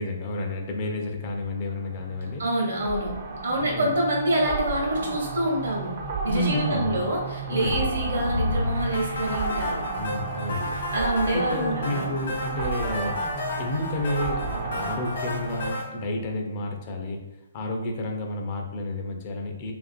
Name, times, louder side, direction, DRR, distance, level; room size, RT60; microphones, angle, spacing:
voice 1, 0.0-2.4 3.6-3.9 6.3-7.0 7.5-7.9 10.0-10.8 11.3-13.2 13.6-17.2 17.5-19.7, left 1 dB, 35° left, 2 dB, 0.4 m, -30 dB
sound 1, 1.2-15.7, right 4 dB, 45° right, 0.5 m, -33 dB
voice 2, 2.4-3.1 3.4-5.9 6.2-9.8 10.9-12.1, right 1 dB, 65° right, -1 dB, 0.8 m, -26 dB
sound 2, 7.6-10.1, left 2 dB, 90° left, 0.7 m, -31 dB
sound 3, 8.9-15.8, left 2 dB, 60° left, 0.9 m, -33 dB
2.5 x 2.4 x 2.4 m, 1.0 s
figure-of-eight pair, 130°, 0 cm